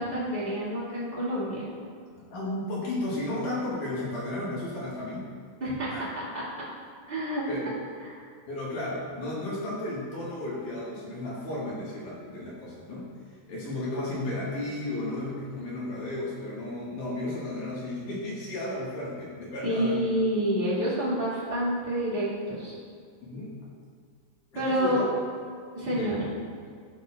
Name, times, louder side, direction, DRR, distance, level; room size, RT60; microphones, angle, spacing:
voice 1, 0.0-1.6 5.6-5.9 6.2-6.3 7.1-7.7 8.0-8.1 19.6-22.8 24.5-25.0 25.7-26.2, equal, 20° right, -9 dB, 1.8 m, -28 dB
voice 2, 2.2-5.3 5.9-6.1 7.5-7.8 8.5-13.1 13.5-20.1 23.2-23.5 24.5-25.0 25.9-26.2, left 1 dB, 60° left, -7 dB, 3.1 m, -34 dB
14.0 x 6.7 x 2.5 m, 2.1 s
omnidirectional pair, 4.3 m